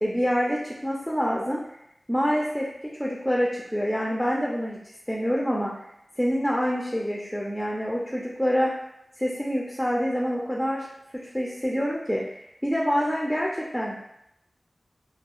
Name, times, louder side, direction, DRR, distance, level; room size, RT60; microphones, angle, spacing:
voice 1, 0.0-1.6 2.1-2.7 3.0-4.8 5.1-5.7 6.2-8.7 9.2-10.9 11.1-14.0, equal, 5° left, -3 dB, 0.4 m, -26 dB
2.3 x 2.3 x 2.9 m, 0.80 s
wide cardioid pair, 55°, 0 cm